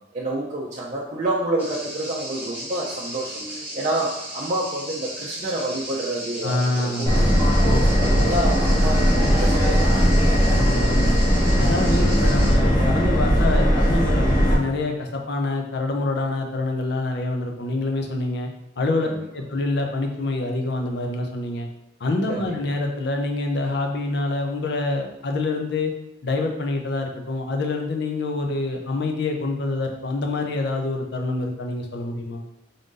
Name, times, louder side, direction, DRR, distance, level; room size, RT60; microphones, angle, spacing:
voice 1, 0.1-3.5 3.7-7.5 8.0-10.1 19.1-19.2 22.3-22.4, right 1 dB, 40° right, -5 dB, 0.5 m, -28 dB
sound 1, 1.6-12.6, right 1 dB, 10° right, 1.0 m, -36 dB
voice 2, 6.4-7.2 7.6-8.7 10.5-11.3 11.6-18.5 18.8-19.1 19.3-21.7 22.0-25.9 26.2-32.4, left 2 dB, 60° left, 2 dB, 0.6 m, -26 dB
Subway metro underground, 7.1-14.6, equal, 25° left, 0.8 m, -18 dB
3.8 x 2.5 x 3.8 m, 0.88 s
head